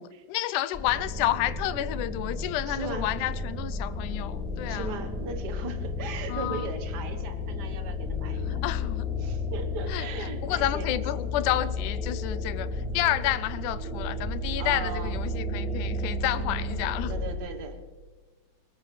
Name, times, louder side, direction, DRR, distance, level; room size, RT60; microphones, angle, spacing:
voice 1, 0.0-4.9 6.3-6.7 8.5-9.1 9.9-17.2, left 13 dB, 85° left, 2.1 m, -30 dB
sound 1, 0.7-17.3, left 2 dB, ahead, 4.3 m, -32 dB
voice 2, 2.7-3.1 4.7-8.6 9.2-11.0 14.6-15.2 17.1-18.1, right 4 dB, 55° right, 1.2 m, -38 dB
21.0 x 19.5 x 3.3 m
omnidirectional pair, 3.5 m